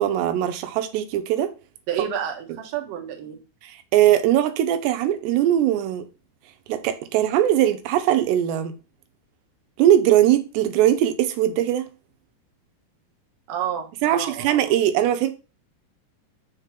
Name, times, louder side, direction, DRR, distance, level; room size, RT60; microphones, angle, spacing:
voice 1, 0.0-1.5 3.6-6.0 6.7-8.7 9.8-11.9 14.0-15.3, right 12 dB, 90° right, 3.0 m, -20 dB
voice 2, 1.9-3.4 13.5-14.6, right 9 dB, 60° right, 1.9 m, -30 dB
6.4 x 3.7 x 5.7 m
omnidirectional pair, 4.8 m